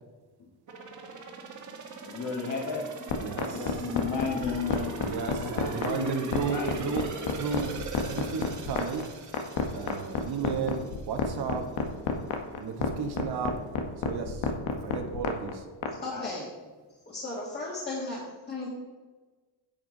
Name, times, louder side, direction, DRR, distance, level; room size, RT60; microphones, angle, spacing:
sound 1, 0.7-11.4 11.8-11.9, right 3 dB, 40° right, 1.6 m, -41 dB
voice 1, 2.0-2.9 3.5-5.1 5.3-7.1 16.1-16.3, left 4 dB, 45° left, -2 dB, 1.8 m, -34 dB
sound 2, 3.1-15.9, left 6 dB, 85° left, 1.4 m, -29 dB
voice 2, 3.2-3.7 5.0-7.7 8.1-9.1 9.7-11.6 12.5-13.5 14.0-14.5 14.8-15.6, right 6 dB, 55° right, 6 dB, 1.3 m, -33 dB
voice 3, 16.0-16.5 17.1-18.2 18.5-18.7, left 2 dB, 20° left, -6 dB, 2.0 m, -35 dB
10.5 x 7.9 x 3.9 m, 1.3 s
cardioid pair, 140°, 45 cm